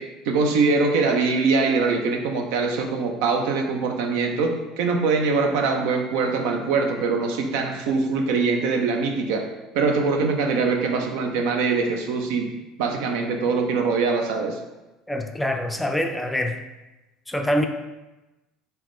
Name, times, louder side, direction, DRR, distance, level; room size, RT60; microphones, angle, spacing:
voice 1, 0.0-9.4 9.7-12.5 12.8-14.6, right 4 dB, 70° right, 3 dB, 0.5 m, -23 dB
voice 2, 15.1-16.6 17.3-17.7, left 1 dB, 10° left, 5 dB, 0.4 m, -25 dB
3.5 x 2.7 x 3.2 m, 1.1 s
hypercardioid pair, 70°, 0 cm